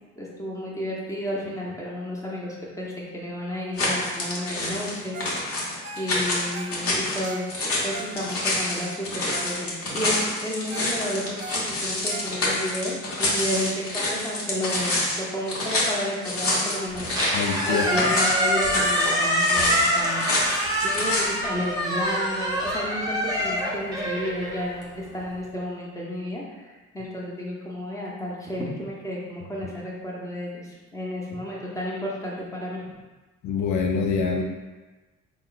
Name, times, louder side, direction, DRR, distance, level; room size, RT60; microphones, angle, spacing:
voice 1, 0.1-20.3 20.8-32.9, equal, 10° left, -5 dB, 1.0 m, -32 dB
sound 1, 3.8-21.2, left 2 dB, 50° left, 1.1 m, -27 dB
Ringtone, 5.1-5.4 5.7-8.6 9.0-9.1 9.3-9.6 9.9-12.7 13.2-13.3, right 3 dB, 40° right, 0.5 m, -40 dB
Squeak, 16.9-25.2, equal, 15° right, 1.0 m, -25 dB
voice 2, 17.3-17.9 33.4-34.4, left 5 dB, 75° left, 2 dB, 0.5 m, -25 dB
3.8 x 2.2 x 3.9 m, 1.2 s
cardioid pair, 90°, 30 cm